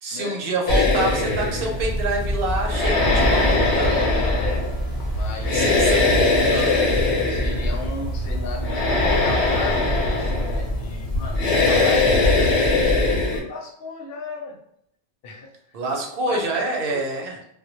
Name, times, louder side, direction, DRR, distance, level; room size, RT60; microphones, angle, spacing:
voice 1, 0.0-3.9 5.5-6.1 6.5-6.8 15.7-17.4, right 2 dB, 65° right, 0 dB, 0.8 m, -26 dB
sound 1, 0.7-13.4, left 2 dB, 85° left, 1.0 m, -21 dB
sound 2, 1.8-11.6, right 2 dB, 30° right, 0.3 m, -32 dB
voice 2, 3.8-4.7 5.1-5.7 7.2-14.6 15.2-15.5 16.3-16.6 16.9-17.0, left 3 dB, 65° left, 0 dB, 0.8 m, -35 dB
2.1 x 2.0 x 2.8 m, 0.74 s
omnidirectional pair, 1.1 m